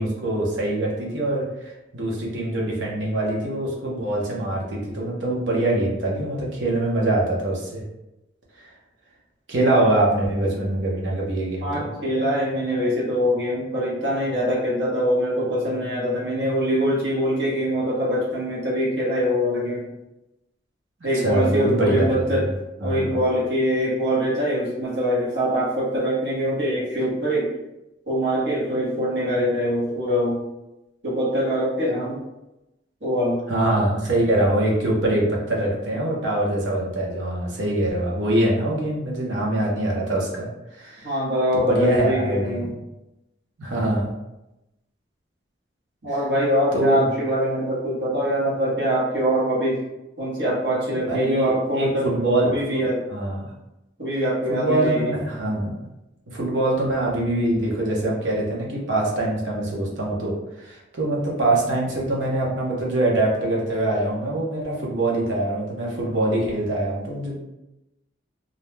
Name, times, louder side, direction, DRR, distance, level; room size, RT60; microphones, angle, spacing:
voice 1, 0.0-7.8 8.6-8.7 9.5-11.9 21.1-22.4 22.8-23.1 33.5-40.5 40.7-41.1 41.5-42.7 43.6-44.1 46.7-47.0 50.9-52.8 53.1-53.5 54.5-55.8 56.3-67.4, right 1 dB, 85° right, -3 dB, 0.8 m, -24 dB
voice 2, 11.6-19.8 21.0-22.5 22.8-27.5 28.1-30.4 31.0-32.2 33.0-33.4 41.0-42.7 46.0-49.8 50.2-53.0 54.0-55.1, equal, 65° right, -6 dB, 1.0 m, -23 dB
2.5 x 2.1 x 3.1 m, 0.94 s
head